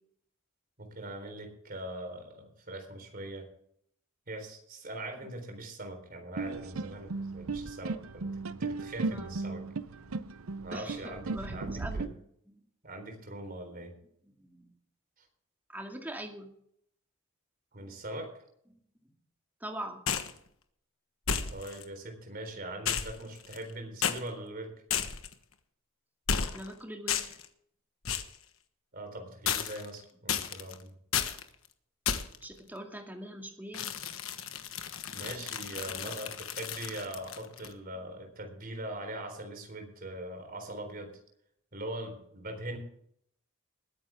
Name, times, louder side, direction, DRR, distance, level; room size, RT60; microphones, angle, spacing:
voice 1, 0.8-3.5 4.3-9.6 10.6-12.1 12.8-13.9 15.2-15.3 17.7-18.3 21.5-24.7 28.9-30.9 35.1-41.1 41.7-42.8, right 1 dB, 45° right, 4 dB, 4.0 m, -41 dB
sound 1, 6.4-12.1, right 3 dB, 80° right, 0.7 m, -36 dB
voice 2, 10.7-12.2 12.5-12.6 14.3-14.7 15.7-16.5 18.7-18.8 19.6-20.0 26.5-27.2 32.4-33.8, right 1 dB, 10° right, 2 dB, 2.2 m, -42 dB
sound 2, 20.1-20.4 21.3-21.8 22.9-23.7 24.0-24.2 24.9-25.3 26.3-26.7 27.1-27.5 28.1-28.4 29.5-29.9 30.3-30.7 31.1-31.4 32.1-32.4 33.7-37.7, left 7 dB, 70° left, 1.3 m, -33 dB
21.0 x 9.8 x 3.6 m, 0.68 s
head